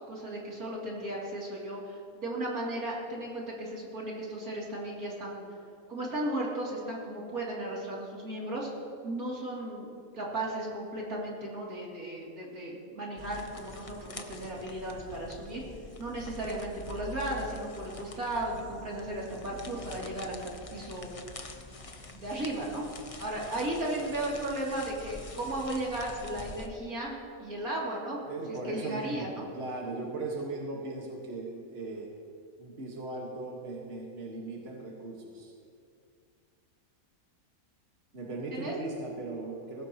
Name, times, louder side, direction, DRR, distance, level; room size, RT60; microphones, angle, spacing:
voice 1, 0.1-5.4 5.9-8.7 9.0-9.9 10.1-15.6 16.0-21.1 21.9-22.8 23.2-28.2 28.6-29.5 38.5-38.8, right 1 dB, 80° right, -5 dB, 3.5 m, -35 dB
sound 1, 13.2-26.7, left 2 dB, 30° left, 0.7 m, -45 dB
voice 2, 28.3-32.1 32.6-35.5 38.1-39.9, right 2 dB, 45° right, -2 dB, 1.9 m, -38 dB
20.5 x 16.0 x 3.0 m, 2.3 s
omnidirectional pair, 1.5 m